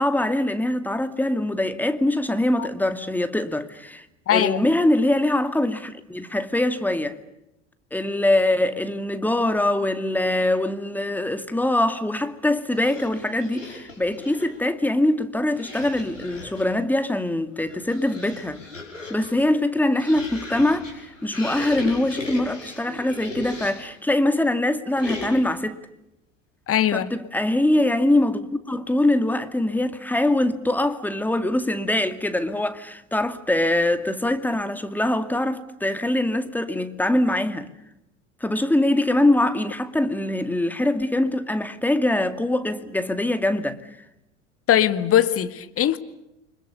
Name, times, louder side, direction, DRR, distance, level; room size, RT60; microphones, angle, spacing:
voice 1, 0.0-4.1 4.3-7.2 7.9-18.6 19.1-25.8 26.9-37.7 38.4-43.8, left 1 dB, 5° left, 2.3 m, -23 dB
voice 2, 4.3-4.6 26.7-27.1 44.7-46.0, left 11 dB, 35° left, 2.0 m, -20 dB
sound 1, 12.7-14.6 15.5-16.8 17.5-24.0 25.0-25.6, left 3 dB, 85° left, 6.2 m, -37 dB
30.0 x 25.5 x 6.9 m
figure-of-eight pair, 75°, 37 cm